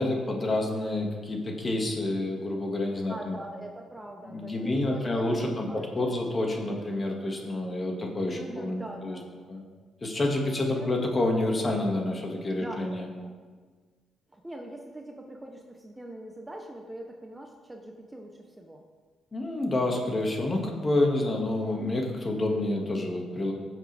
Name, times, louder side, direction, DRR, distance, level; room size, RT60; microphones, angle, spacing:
voice 1, 0.0-3.4 4.2-9.2 9.5-9.6 10.0-13.1 19.3-23.5, left 2 dB, 30° left, 1 dB, 2.1 m, -28 dB
voice 2, 3.0-6.1 8.3-9.5 10.7-11.0 12.6-13.4 14.3-18.8, right 1 dB, 10° right, 2 dB, 1.0 m, -42 dB
15.5 x 7.2 x 3.5 m, 1.5 s
cardioid pair, 90°, 0 cm